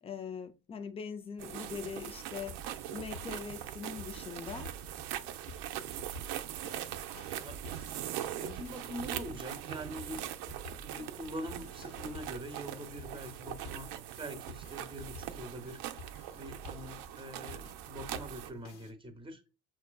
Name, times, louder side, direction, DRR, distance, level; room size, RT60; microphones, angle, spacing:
voice 1, 0.0-2.6 2.9-4.7, left 6 dB, 15° left, 0.3 m, -42 dB
sound 1, 1.4-18.5, right 12 dB, 60° right, 0.6 m, -42 dB
sound 2, 2.2-18.9, left 1 dB, 60° left, 1.0 m, -51 dB
voice 2, 7.3-7.7 8.3-10.3 10.8-13.9 14.2-19.5, equal, 10° right, 0.9 m, -44 dB
5.9 x 2.3 x 2.2 m
hypercardioid pair, 75°, 45 cm